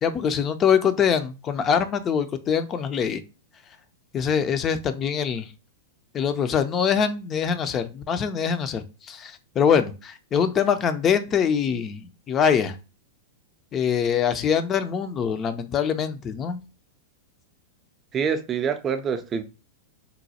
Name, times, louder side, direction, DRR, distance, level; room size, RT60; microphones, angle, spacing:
voice 1, 0.0-3.2 4.1-5.5 6.1-12.8 13.7-16.6, left 7 dB, 30° left, 0.4 m, -24 dB
voice 2, 18.1-19.4, right 6 dB, 25° right, 0.5 m, -26 dB
4.0 x 2.2 x 2.7 m
hypercardioid pair, 100°, 0 cm